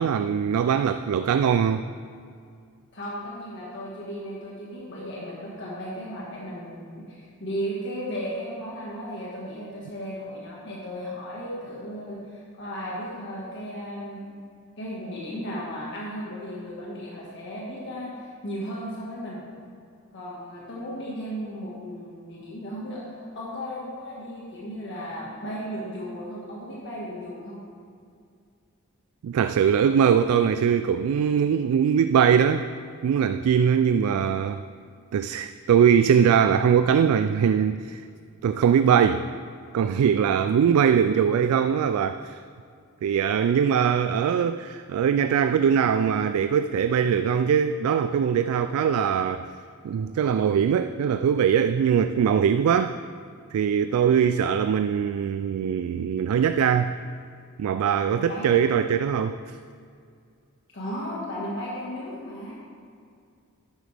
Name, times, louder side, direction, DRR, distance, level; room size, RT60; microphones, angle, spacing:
voice 1, 0.0-1.9 29.2-32.7 33.0-34.6 35.1-38.0 38.4-39.3 39.7-42.4 43.0-49.5 49.8-52.9 53.5-56.9 57.6-59.4, right 7 dB, 85° right, 11 dB, 0.3 m, -21 dB
voice 2, 2.9-14.4 14.8-19.4 20.1-27.6 58.1-58.6 60.7-62.5, equal, 55° left, -5 dB, 1.6 m, -35 dB
11.0 x 9.1 x 3.4 m, 2.3 s
head